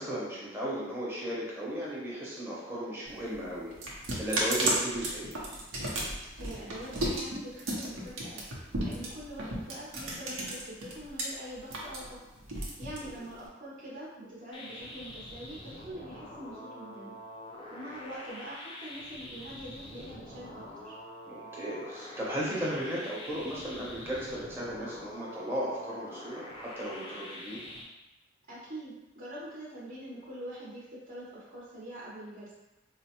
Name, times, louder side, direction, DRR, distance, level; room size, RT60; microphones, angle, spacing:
voice 1, 0.0-5.3 13.0-13.2 21.2-27.6, equal, 10° right, -7 dB, 0.8 m, -36 dB
sound 1, 3.1-11.2 11.6-13.5, right 1 dB, 85° right, 0.7 m, -33 dB
voice 2, 6.0-12.2 12.8-17.1 17.7-21.0 28.5-32.5, right 1 dB, 40° right, -9 dB, 0.8 m, -44 dB
sound 2, 14.5-27.8, left 1 dB, 25° left, 0.4 m, -45 dB
4.4 x 2.0 x 2.8 m, 1.0 s
head